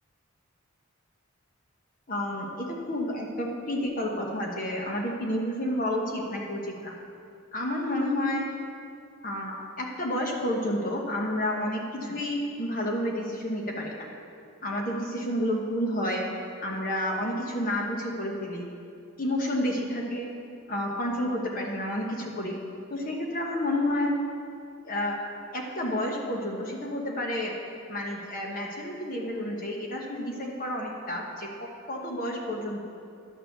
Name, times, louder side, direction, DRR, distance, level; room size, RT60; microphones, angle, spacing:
voice 1, 2.1-6.9 7.5-8.5 9.2-14.0 14.6-16.2 16.6-18.7 19.2-20.3 20.7-22.6 22.9-24.2 24.8-25.2 25.5-27.5 27.9-31.5 31.9-32.8, left 1 dB, 40° left, 0 dB, 1.1 m, -30 dB
11.0 x 6.8 x 6.8 m, 2.5 s
head